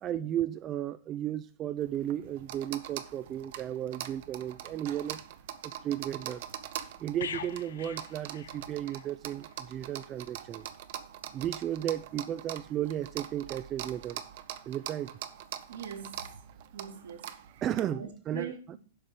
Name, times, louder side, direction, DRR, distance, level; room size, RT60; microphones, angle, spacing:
voice 1, 0.0-5.2 5.6-6.4 7.0-10.7 11.3-14.2 14.7-15.1 17.6-18.5, right 11 dB, 30° right, 0.4 m, -34 dB
sound 1, 1.8-17.8, right 11 dB, 60° right, 0.8 m, -43 dB
sound 2, 7.2-9.1 9.4-9.6, left 8 dB, 80° left, 0.6 m, -42 dB
voice 2, 15.7-16.3 16.7-17.3 17.9-18.8, right 8 dB, 80° right, 1.9 m, -41 dB
7.8 x 5.0 x 7.3 m
hypercardioid pair, 115°, 0 cm